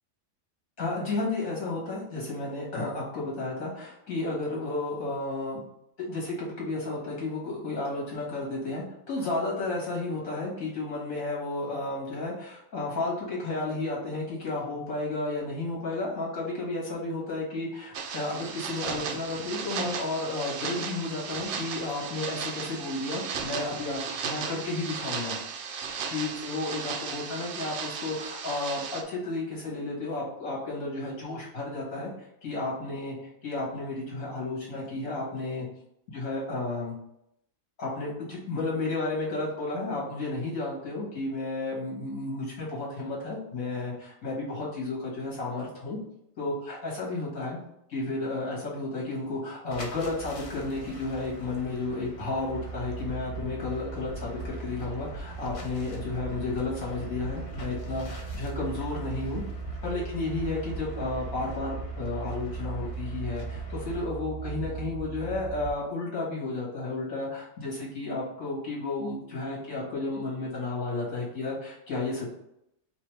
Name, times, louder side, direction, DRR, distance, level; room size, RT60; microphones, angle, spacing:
voice 1, 0.8-5.6 6.0-25.4 26.1-32.1 32.4-35.7 36.1-36.9 37.8-46.0 46.4-47.6 47.9-59.4 59.8-72.3, left 2 dB, 75° left, -4 dB, 2.1 m, -32 dB
sound 1, 17.9-29.0, right 6 dB, 65° right, 0.8 m, -35 dB
sound 2, 49.7-64.1, left 2 dB, 45° left, 0.4 m, -44 dB
sound 3, 52.5-65.7, right 5 dB, 85° right, 1.1 m, -38 dB
5.0 x 2.7 x 3.3 m, 0.78 s
omnidirectional pair, 1.5 m